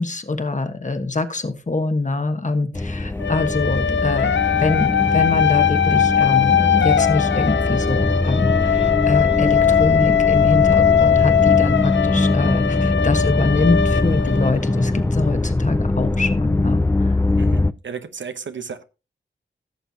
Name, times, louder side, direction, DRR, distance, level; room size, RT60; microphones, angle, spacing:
voice 1, 0.0-17.2, left 3 dB, 40° left, 1.3 m, -24 dB
sound 1, 2.7-17.7, left 2 dB, 15° left, 0.4 m, -21 dB
sound 2, 3.2-15.0, left 8 dB, 70° left, 0.6 m, -20 dB
voice 2, 17.4-18.8, right 6 dB, 75° right, 0.9 m, -33 dB
16.0 x 6.8 x 2.8 m
cardioid pair, 55°, 20 cm